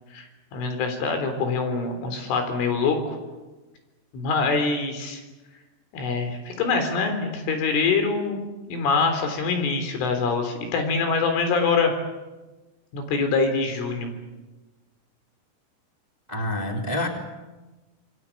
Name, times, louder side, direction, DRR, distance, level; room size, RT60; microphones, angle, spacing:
voice 1, 0.5-3.2 4.1-5.2 5.9-8.4 8.7-11.9 12.9-14.1, left 4 dB, 80° left, 6 dB, 6.1 m, -24 dB
voice 2, 16.3-17.1, left 1 dB, 10° right, 2 dB, 2.6 m, -27 dB
27.0 x 21.5 x 8.8 m, 1.1 s
omnidirectional pair, 5.6 m